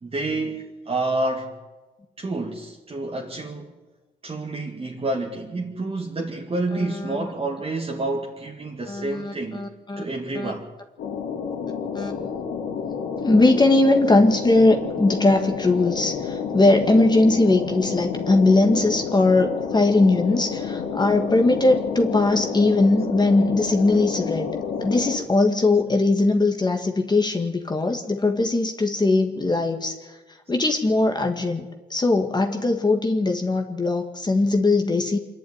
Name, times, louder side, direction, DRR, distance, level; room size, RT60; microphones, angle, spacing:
voice 1, 0.0-1.6 2.2-3.7 4.2-9.6 10.0-10.7, right 2 dB, 30° right, 2.2 m, -29 dB
voice 2, 6.7-7.3 8.9-10.0 10.4-10.5 12.0-12.2 13.2-24.5 24.8-30.2 30.5-31.7 31.9-35.2, left 2 dB, 20° left, 1.9 m, -20 dB
sound 1, 11.0-25.2, left 6 dB, 85° left, 3.1 m, -30 dB
25.5 x 11.0 x 9.7 m
cardioid pair, 90°, 20 cm